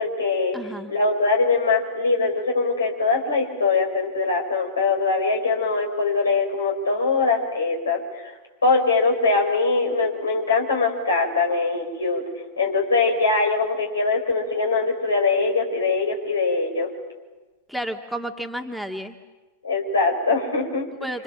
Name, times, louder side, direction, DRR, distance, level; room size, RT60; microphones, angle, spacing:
voice 1, 0.0-0.6 0.9-8.3 8.6-12.2 12.6-16.9 19.6-20.8, left 3 dB, 75° left, 1 dB, 6.0 m, -22 dB
voice 2, 0.5-0.9 17.7-19.2 21.0-21.2, right 1 dB, ahead, 4 dB, 1.9 m, -31 dB
29.0 x 26.5 x 7.7 m, 1.2 s
figure-of-eight pair, 90°, 0 cm